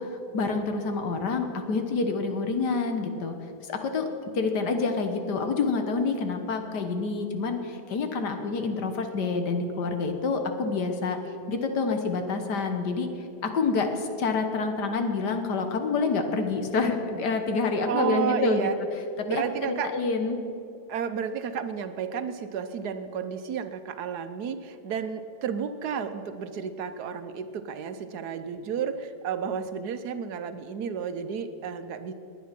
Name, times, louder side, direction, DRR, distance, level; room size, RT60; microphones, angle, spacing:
voice 1, 0.0-3.4 3.7-4.1 4.3-11.2 11.5-13.1 13.4-18.7 19.3-20.4, left 4 dB, 75° left, 6 dB, 1.8 m, -27 dB
voice 2, 17.8-18.8 19.2-19.9 20.9-32.1, right 7 dB, 70° right, 10 dB, 1.3 m, -32 dB
20.0 x 9.3 x 5.9 m, 2.8 s
omnidirectional pair, 1.8 m